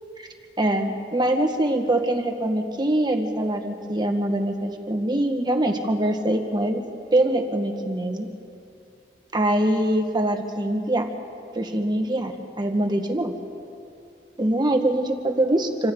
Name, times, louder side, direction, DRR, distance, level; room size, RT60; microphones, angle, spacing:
voice 1, 0.6-6.8 7.1-8.3 9.3-11.1 11.5-13.3 14.4-15.9, right 1 dB, 25° right, 4 dB, 1.7 m, -23 dB
28.0 x 26.0 x 4.0 m, 2.6 s
head